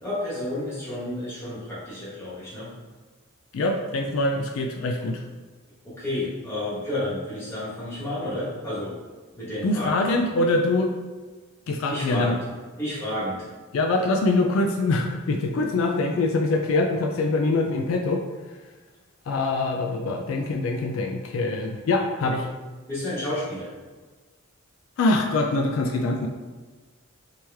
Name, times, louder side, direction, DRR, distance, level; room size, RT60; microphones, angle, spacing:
voice 1, 0.0-2.7 5.8-9.0 9.4-10.0 11.9-12.4 12.8-13.5 22.9-23.7, left 1 dB, 10° left, -10 dB, 1.3 m, -31 dB
voice 2, 3.5-5.2 9.6-10.9 11.7-12.3 13.7-18.2 19.3-22.5 25.0-26.3, left 2 dB, 75° left, 3 dB, 0.3 m, -24 dB
3.1 x 2.9 x 3.4 m, 1.4 s
head